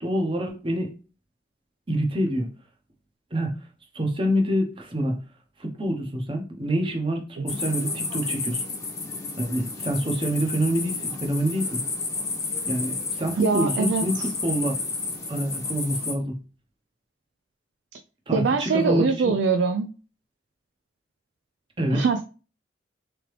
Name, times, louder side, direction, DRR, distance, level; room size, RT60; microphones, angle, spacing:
voice 1, 0.0-0.9 1.9-2.5 3.3-3.5 3.9-5.2 5.6-8.6 9.4-11.8 12.7-14.8 15.3-16.3 18.3-19.3 21.8-22.0, equal, 30° right, 3 dB, 0.8 m, -26 dB
sound 1, 7.5-16.1, left 3 dB, 20° left, 0.9 m, -31 dB
voice 2, 13.4-14.3 18.3-19.9 21.9-22.2, right 5 dB, 70° right, 7 dB, 0.4 m, -23 dB
3.6 x 3.4 x 3.1 m, 0.34 s
head